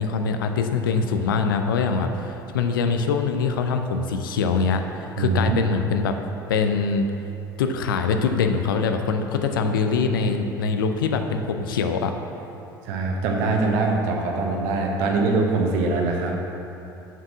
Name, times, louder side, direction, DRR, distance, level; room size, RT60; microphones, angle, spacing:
voice 1, 0.0-6.2 6.5-7.1 7.6-12.1, left 5 dB, 70° left, 6 dB, 0.5 m, -23 dB
voice 2, 5.2-5.6 12.8-16.4, right 3 dB, 60° right, 1 dB, 1.0 m, -23 dB
6.0 x 4.6 x 5.9 m, 2.8 s
figure-of-eight pair, 65°, 12 cm